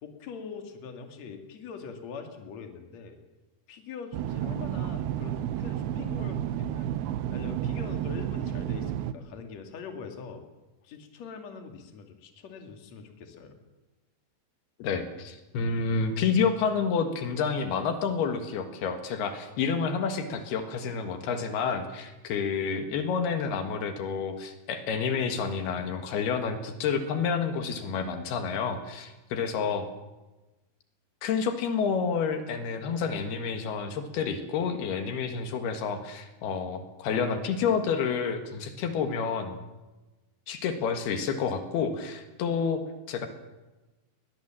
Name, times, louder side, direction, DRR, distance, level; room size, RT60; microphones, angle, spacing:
voice 1, 0.0-3.2 3.7-6.9 7.3-10.4 10.8-13.5, left 6 dB, 50° left, 5 dB, 3.2 m, -43 dB
sound 1, 4.1-9.1, right 11 dB, 85° right, 2.9 m, -31 dB
voice 2, 14.8-29.9 31.2-39.6 40.5-42.8 43.1-43.3, left 6 dB, 80° left, 7 dB, 3.6 m, -29 dB
21.0 x 20.5 x 7.5 m, 1.1 s
omnidirectional pair, 4.5 m